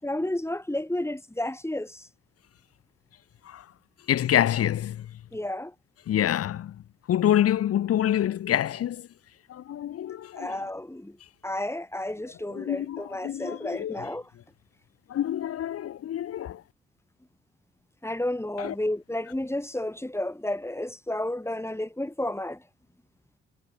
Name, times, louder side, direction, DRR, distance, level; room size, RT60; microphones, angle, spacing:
voice 1, 0.0-2.1 5.3-5.7 10.4-11.2 11.4-14.3 18.0-22.6, left 1 dB, 10° left, 7.1 m, -31 dB
voice 2, 4.1-5.0 6.1-6.7 7.1-9.0 9.5-10.5 12.5-14.0 15.1-16.6 18.6-18.7, left 11 dB, 45° left, 0.9 m, -26 dB
figure-of-eight pair, 40°, 32 cm